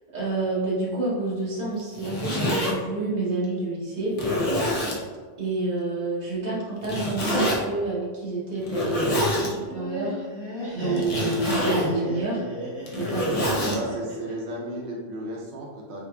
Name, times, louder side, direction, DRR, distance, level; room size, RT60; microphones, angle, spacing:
voice 1, 0.1-4.1 5.4-10.2 10.7-12.4 13.0-13.3 13.6-13.7, right 2 dB, 45° right, -7 dB, 1.0 m, -28 dB
Zipper (clothing), 1.8-2.7 3.4-3.5 4.1-5.0 6.8-7.6 8.6-9.5 11.0-11.9 12.7-13.8, left 1 dB, 40° left, 0.6 m, -26 dB
Laughter, 9.5-14.5, equal, 25° right, 1.1 m, -35 dB
voice 2, 13.1-16.0, right 1 dB, 85° right, -2 dB, 0.9 m, -33 dB
4.0 x 2.9 x 2.2 m, 1.5 s
omnidirectional pair, 1.1 m